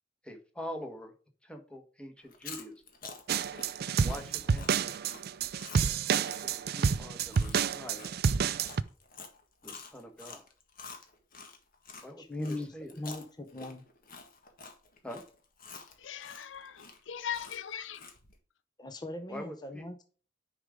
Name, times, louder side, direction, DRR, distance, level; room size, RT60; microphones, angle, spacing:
voice 1, 0.2-1.1 1.4-2.8 4.0-4.9 6.2-8.2 9.6-10.5 12.0-13.0 15.0-15.2 19.3-19.9, equal, 5° left, 1.3 m, -44 dB
Chewing mastication, 2.2-12.1 12.4-18.4, left 4 dB, 50° left, 1.6 m, -49 dB
sound 1, 3.3-8.8, right 6 dB, 55° right, 0.4 m, -29 dB
voice 2, 12.2-13.8 18.8-20.0, left 1 dB, 20° left, 0.7 m, -39 dB
voice 3, 16.0-18.1, left 9 dB, 85° left, 0.6 m, -39 dB
9.8 x 5.0 x 3.6 m
head